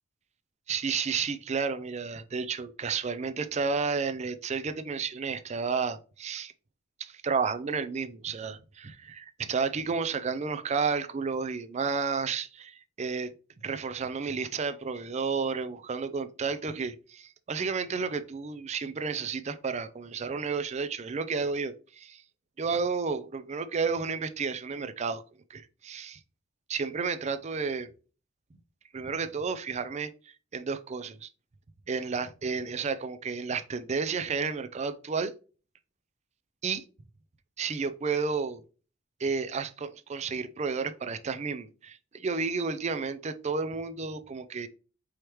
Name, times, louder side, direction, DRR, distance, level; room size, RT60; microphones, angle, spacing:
voice 1, 0.7-6.5 7.0-13.3 13.6-22.2 22.6-25.2 25.5-26.2 26.7-27.9 28.9-30.1 30.5-31.3 31.9-35.3 36.6-36.8 37.6-38.6 39.2-44.7, right 5 dB, 35° right, 0.4 m, -31 dB
4.9 x 3.1 x 3.0 m
head